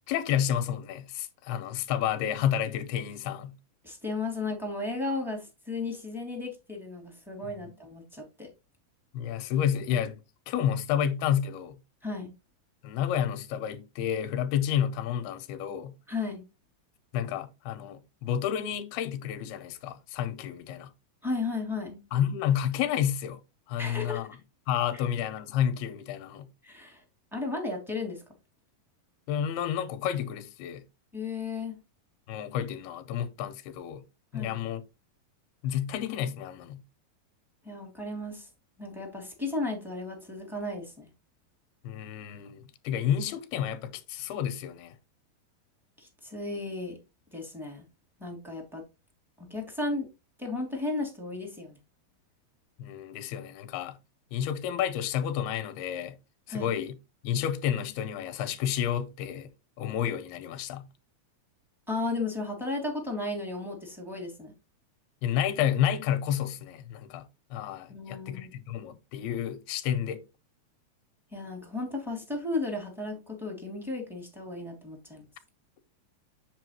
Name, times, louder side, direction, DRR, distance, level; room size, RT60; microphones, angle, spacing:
voice 1, 0.1-3.5 7.6-7.7 9.1-10.2 10.5-11.8 12.8-15.9 17.1-20.9 22.1-23.4 23.7-24.4 24.7-26.5 29.3-30.8 32.3-34.0 34.3-34.8 35.6-36.8 41.8-45.0 52.8-54.0 54.3-56.1 56.5-57.0 57.2-59.5 59.8-60.8 65.2-70.2, left 9 dB, 85° left, 2.8 m, -30 dB
voice 2, 3.8-8.5 12.0-12.3 16.1-16.4 21.2-22.0 23.8-24.3 24.9-25.0 26.6-27.0 27.3-28.2 31.1-31.8 34.3-34.6 37.6-38.5 38.8-41.1 46.0-47.0 47.3-47.8 48.2-48.8 49.4-50.1 50.4-51.8 56.5-56.8 61.9-64.5 67.9-68.5 71.3-75.3, left 3 dB, ahead, 2.1 m, -34 dB
7.5 x 7.5 x 3.1 m
omnidirectional pair, 4.5 m